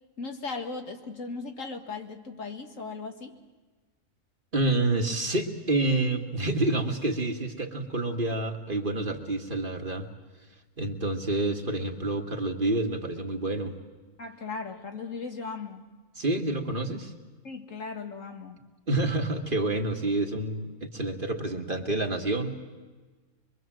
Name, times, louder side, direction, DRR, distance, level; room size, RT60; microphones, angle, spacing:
voice 1, 0.2-3.3 14.2-15.9 17.4-18.6, left 4 dB, 65° left, 4 dB, 2.3 m, -37 dB
voice 2, 4.5-10.1 10.8-13.8 16.2-17.1 18.9-22.6, right 2 dB, 40° right, 4 dB, 2.0 m, -28 dB
24.5 x 23.5 x 7.7 m, 1.3 s
omnidirectional pair, 1.4 m